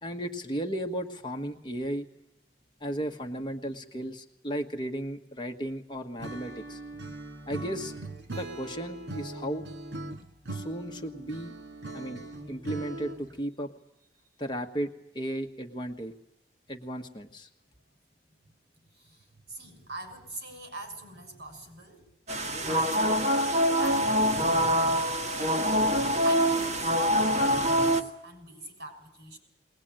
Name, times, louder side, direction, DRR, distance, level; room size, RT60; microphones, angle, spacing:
voice 1, 0.0-2.1 2.8-6.8 7.5-7.9 8.3-9.7 10.5-11.5 11.9-12.2 12.5-13.7 14.4-16.1 16.7-17.5, equal, 25° left, 5 dB, 1.3 m, -35 dB
Acoustic guitar / Strum, 6.2-13.4, right 2 dB, 80° right, 2.2 m, -40 dB
voice 2, 18.9-22.1 22.6-24.2 26.2-29.4, right 2 dB, 65° right, 5 dB, 6.1 m, -43 dB
sound 1, 22.3-28.0, equal, 40° right, 1.6 m, -25 dB
21.0 x 19.5 x 8.9 m, 0.85 s
head